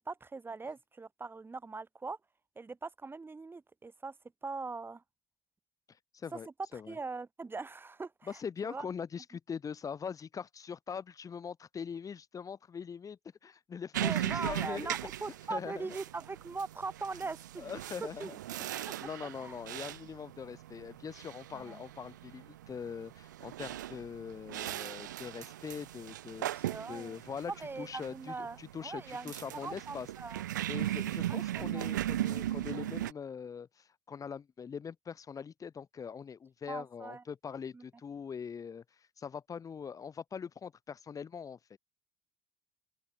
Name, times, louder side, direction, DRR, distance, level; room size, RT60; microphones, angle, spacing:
voice 1, 0.0-2.2 2.6-4.1 4.4-5.0 6.3-6.4 6.7-8.9 14.0-17.7 18.0-18.3 18.9-19.0 19.4-19.6 21.5-21.8 26.6-27.2 27.5-30.4 31.6-31.9 36.7-37.2 37.7-37.8, right 4 dB, 25° right, 7.5 m, -41 dB
voice 2, 6.1-6.5 6.7-7.0 8.3-15.0 15.5-16.0 17.6-18.4 18.8-27.5 27.8-30.1 30.7-41.8, left 6 dB, 35° left, 3.8 m, -42 dB
sound 1, 13.9-33.1, right 13 dB, 85° right, 1.9 m, -38 dB
open air
hypercardioid pair, 65°, 10 cm